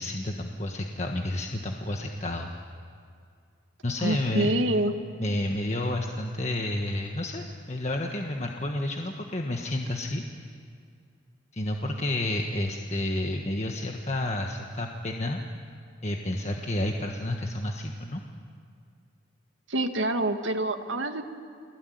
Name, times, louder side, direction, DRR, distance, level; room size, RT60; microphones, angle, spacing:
voice 1, 0.0-2.5 3.8-4.5 5.2-10.2 11.5-15.4 16.0-18.2, left 1 dB, 35° left, 2 dB, 1.4 m, -30 dB
voice 2, 4.0-4.9 19.7-21.2, right 1 dB, 80° right, 6 dB, 1.8 m, -26 dB
29.5 x 21.0 x 9.4 m, 2.3 s
head